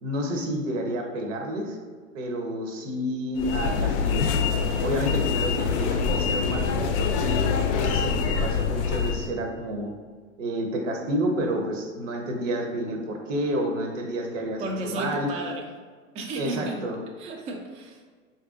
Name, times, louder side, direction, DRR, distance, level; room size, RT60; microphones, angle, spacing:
voice 1, 0.0-1.8 2.1-4.3 4.8-7.4 7.7-9.9 10.4-15.3 16.4-17.0, equal, 75° right, 2 dB, 0.7 m, -30 dB
sound 1, 3.4-9.3, left 6 dB, 60° left, 0.5 m, -25 dB
voice 2, 14.6-15.6 16.1-16.8 17.2-18.0, right 2 dB, 20° right, 0 dB, 0.3 m, -33 dB
4.2 x 2.6 x 2.4 m, 1.5 s
hypercardioid pair, 95°, 39 cm